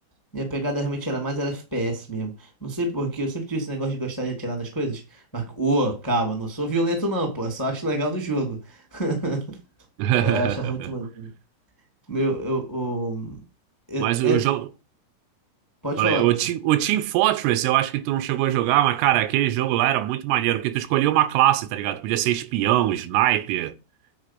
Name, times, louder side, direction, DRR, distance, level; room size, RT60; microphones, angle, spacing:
voice 1, 0.3-2.3 2.6-9.4 10.2-11.3 12.1-13.4 13.9-14.4 15.8-16.3, right 1 dB, 10° left, 1.1 m, -27 dB
voice 2, 10.0-10.9 14.0-14.7 16.0-23.7, right 14 dB, 80° right, 3.2 m, -22 dB
9.6 x 4.7 x 7.6 m
omnidirectional pair, 5.8 m